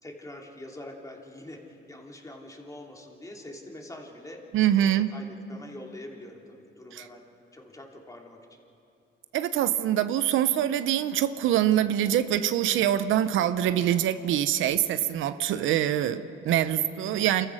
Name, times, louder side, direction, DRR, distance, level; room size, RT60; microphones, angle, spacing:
voice 1, 0.0-4.4 4.8-7.3 7.5-8.6, left 1 dB, 15° left, 0 dB, 2.9 m, -44 dB
voice 2, 4.5-5.1 6.9-7.0 9.3-17.5, right 11 dB, 85° right, 12 dB, 0.7 m, -24 dB
27.5 x 14.5 x 6.3 m, 2.6 s
cardioid pair, 90°, 20 cm